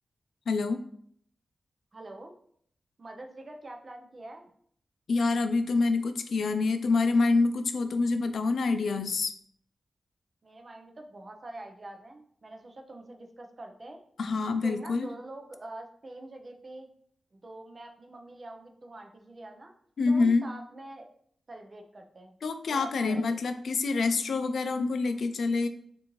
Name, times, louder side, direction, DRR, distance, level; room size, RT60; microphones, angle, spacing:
voice 1, 0.5-0.8 5.1-9.4 14.2-15.1 20.0-20.4 22.4-25.7, left 3 dB, 75° left, 9 dB, 0.4 m, -26 dB
voice 2, 1.9-2.4 3.0-4.5 10.4-14.0 14.6-16.9 17.3-19.7 20.1-21.1 21.5-22.3 22.7-23.4, right 1 dB, 35° right, 3 dB, 0.6 m, -45 dB
6.2 x 2.6 x 3.0 m, 0.65 s
wide cardioid pair, 135°, 0 cm